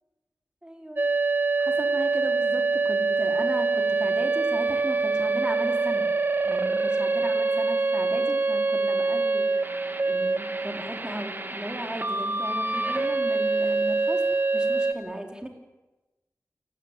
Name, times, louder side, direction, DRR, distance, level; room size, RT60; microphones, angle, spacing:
voice 1, 0.6-1.0 1.6-6.1 6.4-9.5 10.0-14.2 14.5-15.5, right 1 dB, 15° right, 3 dB, 4.7 m, -36 dB
sound 1, 1.0-14.9, right 3 dB, 35° right, 2.1 m, -25 dB
28.5 x 18.0 x 9.4 m, 1.1 s
wide cardioid pair, 65°, 6 cm